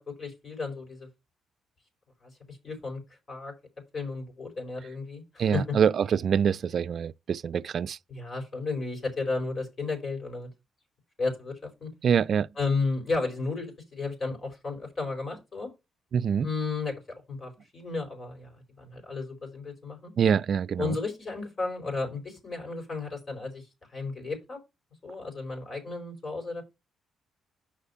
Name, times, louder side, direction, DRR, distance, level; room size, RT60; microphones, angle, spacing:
voice 1, 0.2-1.1 2.2-3.0 3.3-3.5 3.9-5.7 8.1-10.5 11.2-11.9 12.6-15.7 16.4-18.5 18.8-20.1 20.8-23.7 23.9-24.6 25.0-26.6, left 3 dB, 40° left, 4.8 m, -33 dB
voice 2, 5.4-8.0 12.0-12.5 16.1-16.5 20.2-21.0, right 7 dB, 55° right, 0.4 m, -25 dB
6.7 x 5.0 x 5.6 m
cardioid pair, 90°, 0 cm